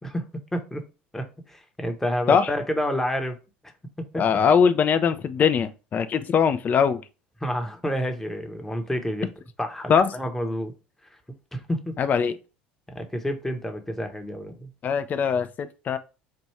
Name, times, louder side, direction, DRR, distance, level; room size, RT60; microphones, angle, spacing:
voice 1, 0.0-0.8 1.1-3.4 4.0-4.2 7.4-9.3 9.6-10.7 11.5-11.9 12.9-14.7, equal, 5° left, 0.9 m, -29 dB
voice 2, 4.2-7.0 9.9-10.1 12.0-12.4 14.8-16.0, left 6 dB, 35° left, 0.4 m, -21 dB
4.4 x 2.6 x 3.1 m
hypercardioid pair, 75°, 5 cm